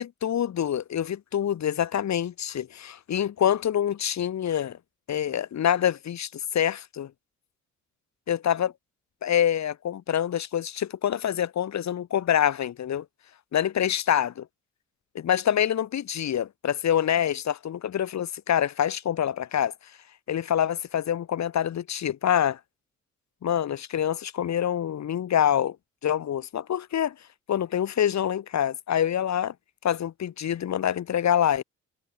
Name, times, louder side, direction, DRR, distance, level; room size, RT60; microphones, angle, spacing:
voice 1, 0.0-4.8 5.1-7.1 8.3-8.7 9.2-13.0 13.5-14.5 15.1-19.7 20.3-22.6 23.4-25.8 26.0-27.1 27.5-29.5 29.8-31.6, left 10 dB, 65° left, 7.9 m, -26 dB
cardioid pair, 90°, 30 cm